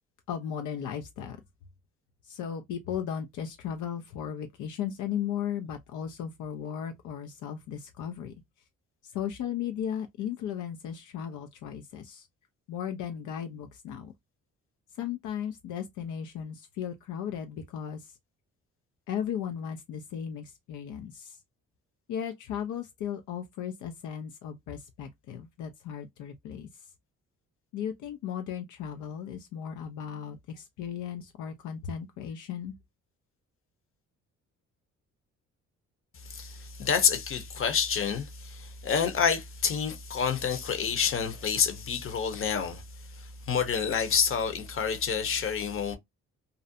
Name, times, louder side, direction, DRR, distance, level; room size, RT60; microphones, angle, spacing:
voice 1, 0.3-1.4 2.2-8.3 9.0-12.3 12.7-14.1 14.9-18.2 19.1-21.4 22.1-26.9 27.7-32.7, left 9 dB, 75° left, 0.5 m, -36 dB
voice 2, 36.1-46.0, left 6 dB, 45° left, 0.9 m, -28 dB
2.5 x 2.1 x 2.6 m
cardioid pair, 90°, 30 cm